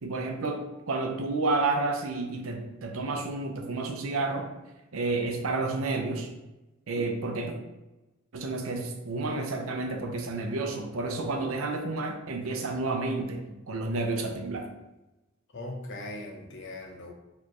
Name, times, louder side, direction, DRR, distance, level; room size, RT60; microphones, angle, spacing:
voice 1, 0.0-4.5 4.9-6.3 6.9-7.5 8.3-14.7, right 3 dB, 75° right, 4 dB, 0.6 m, -30 dB
voice 2, 15.5-17.1, left 1 dB, 60° left, 2 dB, 0.7 m, -39 dB
4.3 x 3.2 x 3.0 m, 1.0 s
head